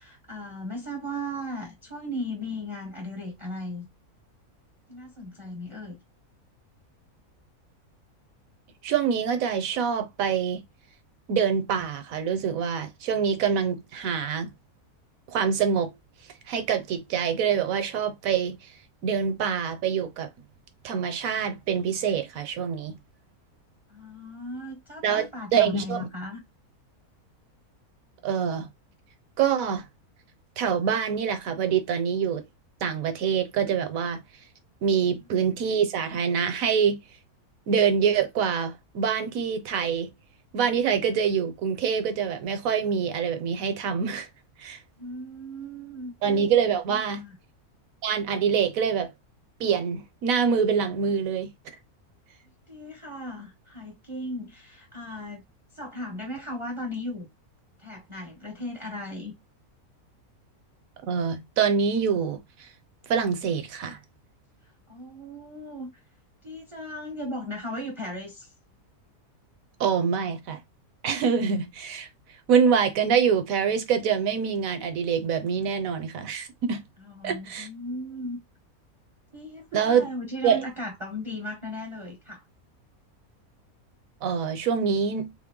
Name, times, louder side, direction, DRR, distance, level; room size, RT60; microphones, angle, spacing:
voice 1, 0.0-3.9 4.9-6.0 23.9-26.4 45.0-46.1 47.1-47.4 52.7-55.4 55.7-57.3 57.8-59.3 64.9-66.0 66.4-68.5 77.1-78.4 79.3-82.4, left 1 dB, 30° right, 0.7 m, -36 dB
voice 2, 8.8-10.6 11.3-14.5 15.3-15.9 16.5-18.7 19.0-20.3 20.8-23.0 25.0-26.1 28.2-28.7 29.4-29.8 30.6-32.4 32.8-34.2 34.8-37.0 37.7-40.1 40.5-44.3 44.6-44.8 46.2-47.2 48.0-49.1 49.6-51.5 61.1-62.7 63.1-64.0 69.8-70.6 71.0-72.1 72.5-76.8 77.2-77.7 79.7-80.1 80.4-80.6 84.2-85.3, right 7 dB, 70° right, 1.1 m, -25 dB
3.8 x 2.1 x 3.5 m
omnidirectional pair, 1.6 m